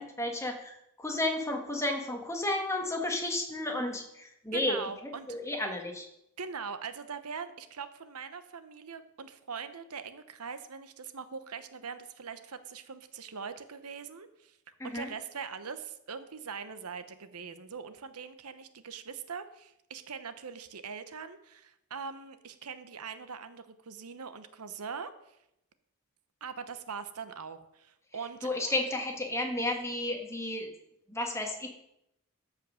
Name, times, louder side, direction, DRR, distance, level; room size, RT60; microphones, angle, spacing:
voice 1, 0.0-4.8 5.3-6.1 14.8-15.1 28.4-30.7 31.1-31.7, left 1 dB, 15° left, 2 dB, 1.6 m, -32 dB
voice 2, 4.5-5.3 6.4-14.6 14.8-25.4 26.4-28.5, right 6 dB, 90° right, 11 dB, 0.9 m, -42 dB
13.5 x 5.5 x 6.4 m, 0.81 s
head